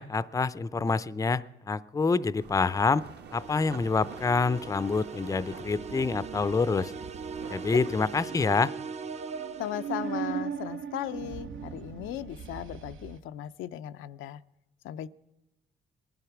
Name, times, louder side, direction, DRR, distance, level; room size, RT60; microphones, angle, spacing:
voice 1, 0.0-3.0 3.3-6.9 7.5-8.7, left 4 dB, 15° left, 16 dB, 0.5 m, -27 dB
sound 1, 2.4-8.2, right 6 dB, 55° right, 1.2 m, -47 dB
sound 2, 3.3-10.3, right 5 dB, 35° right, 0.5 m, -41 dB
sound 3, 5.0-13.2, right 7 dB, 80° right, 1.0 m, -40 dB
voice 2, 9.6-14.4 14.8-15.1, left 12 dB, 85° left, 10 dB, 0.5 m, -37 dB
19.5 x 11.5 x 5.9 m, 0.97 s
cardioid pair, 90°, 20 cm